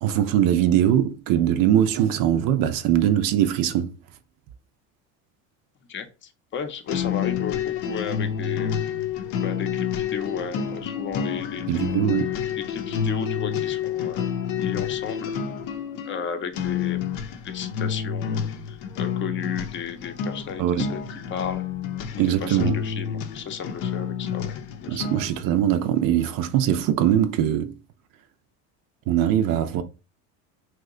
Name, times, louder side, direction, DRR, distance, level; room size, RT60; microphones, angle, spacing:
voice 1, 0.0-3.9 11.7-12.3 20.6-20.9 22.2-22.8 24.9-27.7 29.1-29.8, right 10 dB, 55° right, 0.5 m, -21 dB
voice 2, 5.9-8.8 9.4-12.0 12.7-14.3 14.6-15.3 16.0-17.0 17.4-21.0 21.3-21.6 22.1-25.0, left 7 dB, 30° left, 0.6 m, -34 dB
sound 1, 6.9-25.4, left 8 dB, 70° left, 0.6 m, -29 dB
2.9 x 2.2 x 3.6 m
supercardioid pair, 95°, 41 cm